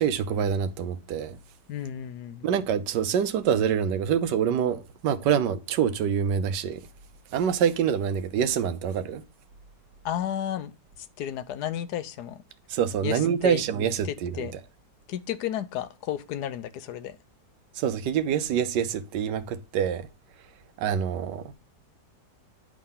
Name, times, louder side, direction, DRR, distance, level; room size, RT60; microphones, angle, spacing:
voice 1, 0.0-1.4 2.4-6.8 7.3-9.2 12.7-14.5 17.7-20.1 20.8-21.5, right 8 dB, 90° right, 1.4 m, -26 dB
voice 2, 1.7-2.5 10.0-12.4 13.0-13.6 14.0-14.6 15.1-17.2, left 10 dB, 75° left, 1.2 m, -33 dB
10.5 x 3.7 x 5.5 m
omnidirectional pair, 1.8 m